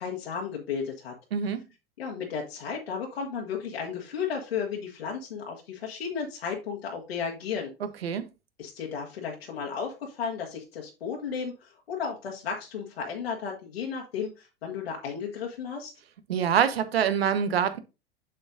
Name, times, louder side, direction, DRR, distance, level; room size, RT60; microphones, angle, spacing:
voice 1, 0.0-1.1 2.0-7.7 8.6-15.9, left 6 dB, 80° left, 1.5 m, -34 dB
voice 2, 16.3-17.8, right 8 dB, 80° right, 1.0 m, -25 dB
7.3 x 6.6 x 2.6 m
hypercardioid pair, 90°, 30 cm